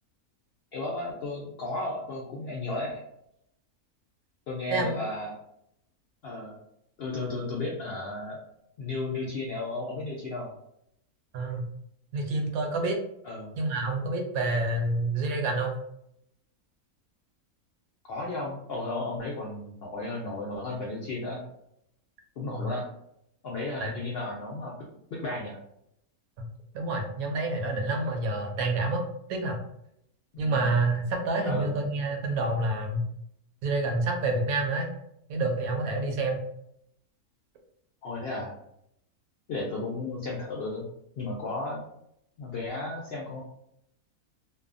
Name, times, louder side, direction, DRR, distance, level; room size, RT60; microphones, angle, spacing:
voice 1, 0.7-3.0 4.5-5.4 6.2-6.6 7.0-8.4 8.8-10.5 13.2-13.5 18.1-21.4 22.4-22.8 23.4-24.7 25.1-25.6 30.3-30.7 31.4-31.7 38.0-38.5 39.5-40.9 41.2-41.8 42.4-43.4, left 2 dB, 70° left, -3 dB, 0.5 m, -34 dB
voice 2, 4.7-5.0 11.3-11.6 12.1-13.0 13.6-15.7 22.5-22.7 23.8-23.9 26.7-29.0 29.3-29.6 30.4-33.0 33.6-34.9 35.3-36.4, right 2 dB, 75° right, 2 dB, 1.0 m, -28 dB
2.6 x 2.2 x 2.4 m, 0.76 s
omnidirectional pair, 1.6 m